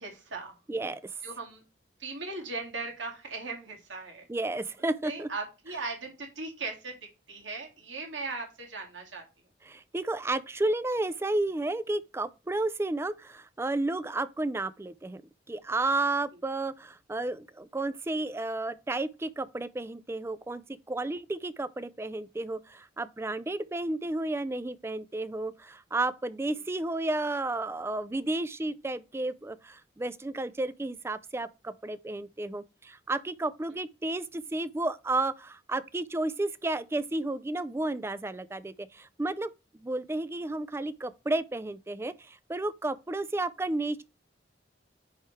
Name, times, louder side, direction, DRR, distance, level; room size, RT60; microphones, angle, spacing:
voice 1, 0.0-0.5 1.2-1.6 2.0-4.3 5.0-7.0 7.3-9.2, right 3 dB, 85° right, 2.2 m, -38 dB
voice 2, 0.7-1.1 4.3-5.3 9.6-15.2 15.5-20.6 20.9-39.5 39.8-44.0, right 2 dB, 15° right, 0.3 m, -32 dB
10.0 x 3.5 x 3.2 m
head